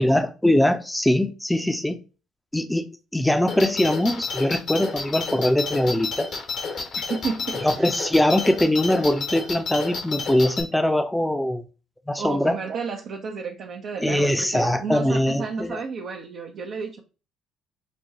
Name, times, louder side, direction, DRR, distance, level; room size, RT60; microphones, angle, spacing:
voice 1, 0.0-2.0 2.5-6.3 7.6-11.6 12.1-12.6 14.0-15.8, left 1 dB, 5° left, 0.7 m, -22 dB
sound 1, 3.5-10.6, left 4 dB, 60° left, 1.2 m, -30 dB
voice 2, 7.1-7.9 12.2-17.0, right 5 dB, 60° right, 0.7 m, -32 dB
6.0 x 2.2 x 2.7 m
hypercardioid pair, 60°, 0 cm